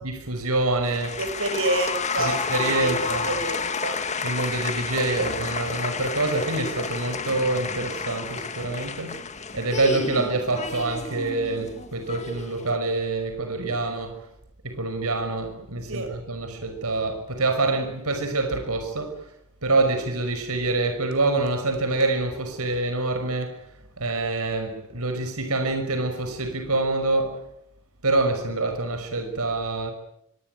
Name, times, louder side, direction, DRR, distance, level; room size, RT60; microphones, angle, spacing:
voice 1, 0.0-1.2 2.2-3.3 4.2-9.2 9.5-14.3 14.6-19.2 19.6-23.6 24.0-27.4 28.0-29.9, right 2 dB, 80° right, 5.8 m, -26 dB
sound 1, 0.8-12.8, left 5 dB, 35° left, 2.0 m, -31 dB
voice 2, 1.2-4.0 15.9-16.1, right 2 dB, 65° right, 6.2 m, -28 dB
26.0 x 24.5 x 9.3 m
head